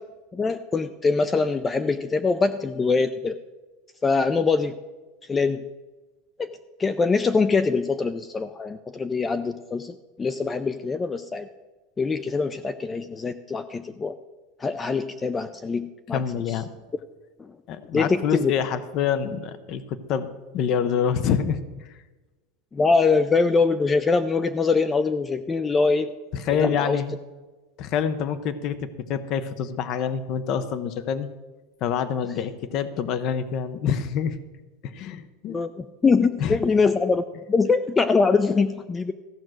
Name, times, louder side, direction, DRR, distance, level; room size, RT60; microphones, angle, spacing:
voice 1, 0.3-3.4 4.0-4.8 5.3-5.6 6.4-6.5 6.8-11.5 12.0-14.1 14.6-16.2 17.4-17.5 17.9-18.5 22.7-26.1 26.6-27.0 35.5-39.1, left 4 dB, 10° left, 13 dB, 0.3 m, -23 dB
voice 2, 16.1-16.7 17.7-20.3 20.5-21.9 26.3-27.1 27.8-31.3 31.8-34.4 34.8-35.6 36.4-36.6, left 7 dB, 35° left, 13 dB, 0.7 m, -26 dB
14.5 x 6.1 x 7.7 m, 1.2 s
supercardioid pair, 175°, 0 cm